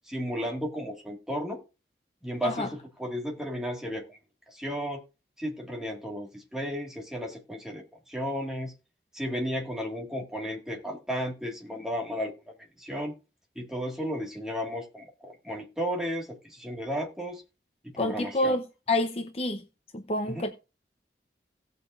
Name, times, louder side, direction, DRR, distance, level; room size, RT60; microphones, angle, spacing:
voice 1, 0.1-1.6 2.2-4.2 4.5-5.0 5.4-8.7 9.1-12.3 12.8-13.1 13.6-17.4 17.8-18.6 20.3-20.5, equal, 5° right, 1.9 m, -34 dB
voice 2, 18.0-19.6 19.9-20.5, left 1 dB, 35° left, 0.8 m, -28 dB
17.5 x 6.6 x 2.5 m
head